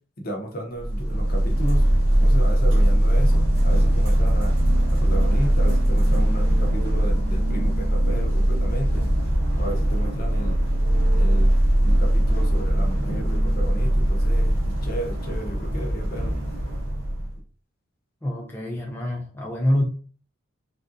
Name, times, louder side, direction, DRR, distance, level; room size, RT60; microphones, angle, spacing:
voice 1, 0.2-1.8 2.1-4.6 4.9-9.0 9.6-10.6 11.1-11.5 11.8-16.3, right 1 dB, 50° left, 0.8 m, -33 dB
sound 1, 0.8-17.3, right 1 dB, 70° right, 0.9 m, -20 dB
voice 2, 18.2-19.8, left 1 dB, 10° left, 0.4 m, -25 dB
3.3 x 2.5 x 2.6 m
head